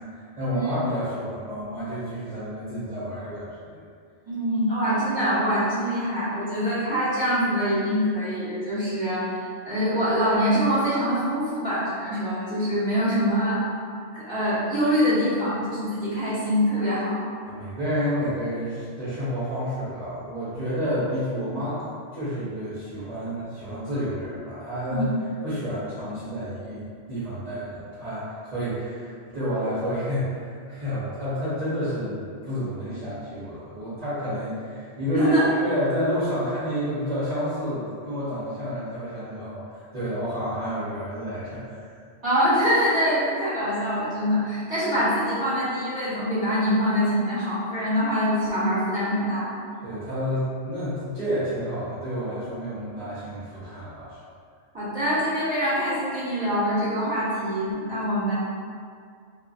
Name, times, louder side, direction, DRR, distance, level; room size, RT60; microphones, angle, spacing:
voice 1, 0.1-3.8 17.4-21.9 22.1-25.1 25.4-35.3 35.6-41.8 49.8-54.2, equal, 40° right, -13 dB, 0.7 m, -30 dB
voice 2, 4.3-13.6 14.1-17.2 24.9-25.0 35.1-35.5 42.2-49.6 54.7-58.3, equal, 25° right, -13 dB, 1.3 m, -24 dB
2.7 x 2.4 x 2.5 m, 2.1 s
omnidirectional pair, 1.3 m